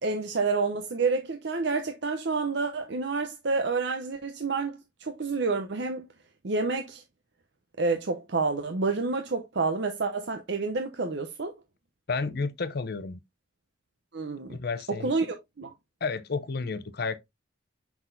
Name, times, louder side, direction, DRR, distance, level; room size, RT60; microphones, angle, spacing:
voice 1, 0.0-6.1 6.4-7.0 7.8-11.5 14.1-14.6 15.0-15.7, right 4 dB, 60° right, 0.7 m, -29 dB
voice 2, 12.1-13.2 14.5-15.1 16.0-17.2, left 4 dB, 50° left, 0.6 m, -31 dB
6.1 x 5.8 x 2.6 m
head